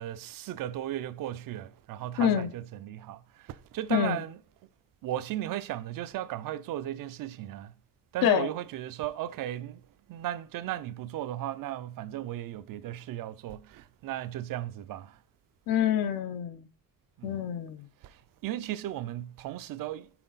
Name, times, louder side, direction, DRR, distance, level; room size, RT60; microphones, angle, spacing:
voice 1, 0.0-4.4 5.0-7.7 8.1-9.8 10.1-15.2 17.2-17.3 18.0-20.1, right 13 dB, 70° right, 0.5 m, -36 dB
voice 2, 2.2-2.5 3.9-4.2 8.2-8.5 15.7-16.7 17.2-17.9, left 9 dB, 75° left, 0.7 m, -26 dB
5.9 x 4.1 x 4.0 m
cardioid pair, 170°, 35 cm